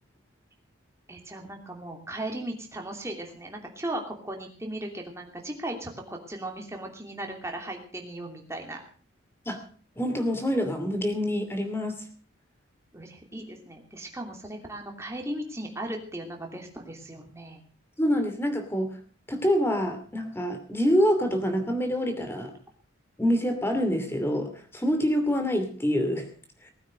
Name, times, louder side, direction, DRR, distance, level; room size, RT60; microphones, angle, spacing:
voice 1, 1.1-8.8 12.9-17.6, right 1 dB, 15° right, 2 dB, 2.9 m, -37 dB
voice 2, 10.0-12.0 18.0-19.0 19.3-22.5 23.2-26.3 26.6-26.7, equal, 10° left, 7 dB, 2.7 m, -26 dB
19.5 x 9.1 x 6.4 m, 0.43 s
head